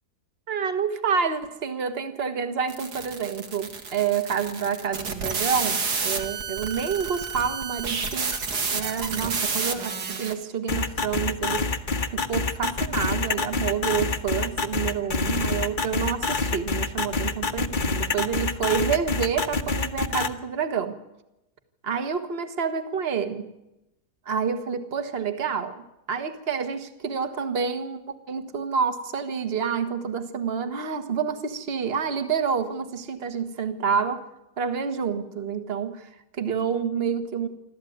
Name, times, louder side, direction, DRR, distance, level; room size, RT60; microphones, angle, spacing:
voice 1, 0.5-8.3 8.7-11.7 12.1-21.0 21.8-23.5 24.3-28.0 28.3-34.2 34.6-37.5, right 6 dB, 40° right, 9 dB, 1.6 m, -28 dB
sound 1, 2.7-10.4, right 5 dB, 85° right, 2.5 m, -30 dB
sound 2, 10.7-20.3, left 4 dB, 35° left, 1.2 m, -26 dB
27.0 x 13.0 x 9.4 m, 0.90 s
omnidirectional pair, 1.7 m